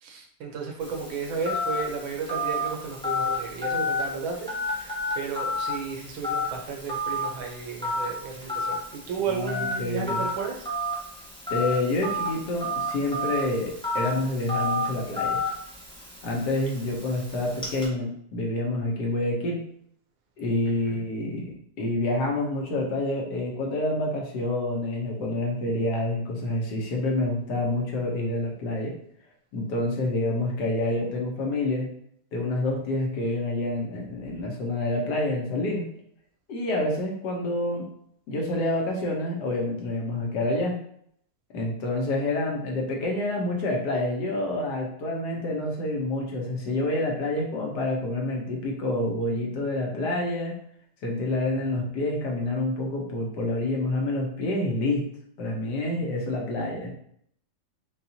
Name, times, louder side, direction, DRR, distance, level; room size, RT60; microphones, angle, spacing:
voice 1, 0.0-10.7 20.8-21.0, right 5 dB, 90° right, 1 dB, 1.6 m, -33 dB
Telephone, 0.8-17.9, left 1 dB, 5° left, 0.4 m, -31 dB
voice 2, 9.3-10.3 11.5-15.4 16.2-19.6 20.4-28.9 29.5-31.9 32.3-35.8 36.5-37.8 38.3-40.7 41.5-50.5 51.0-55.1 55.4-56.9, left 2 dB, 65° left, 0 dB, 1.3 m, -28 dB
5.4 x 2.3 x 2.7 m, 0.67 s
omnidirectional pair, 2.1 m